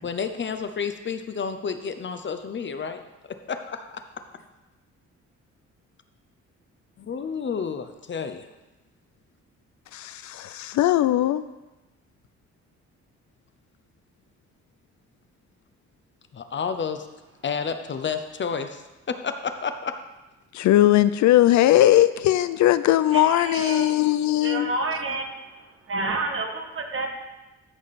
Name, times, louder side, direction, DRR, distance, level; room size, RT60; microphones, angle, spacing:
voice 1, 0.0-3.0 3.3-4.0 4.3-4.4 7.0-8.5 16.3-17.1 17.4-19.9, left 6 dB, 40° left, 8 dB, 0.7 m, -30 dB
voice 2, 9.9-11.4 20.5-24.7, left 13 dB, 70° left, 14 dB, 0.5 m, -19 dB
voice 3, 23.1-23.9 24.4-25.5 25.9-27.1, right 2 dB, 45° right, 3 dB, 1.6 m, -29 dB
14.0 x 5.0 x 4.2 m, 1.1 s
cardioid pair, 90°, 30 cm